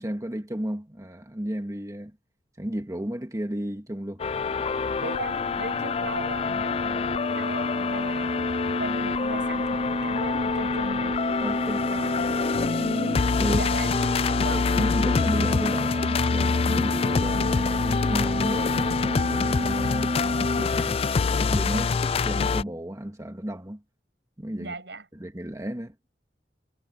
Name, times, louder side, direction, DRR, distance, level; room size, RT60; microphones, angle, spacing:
voice 1, 0.0-2.1 2.6-4.2 11.4-11.9 13.4-13.6 14.5-20.1 20.6-21.8 22.1-23.8 24.4-24.7 25.1-25.9, equal, 20° right, 1.7 m, -33 dB
sound 1, 4.2-22.6, left 5 dB, 35° left, 0.3 m, -26 dB
sound 2, 4.5-20.6, equal, 35° right, 1.5 m, -30 dB
voice 2, 5.0-8.4 8.8-11.2 11.9-12.4 13.4-14.7 21.7-22.0 24.6-25.0, right 2 dB, 75° right, 6.4 m, -38 dB
head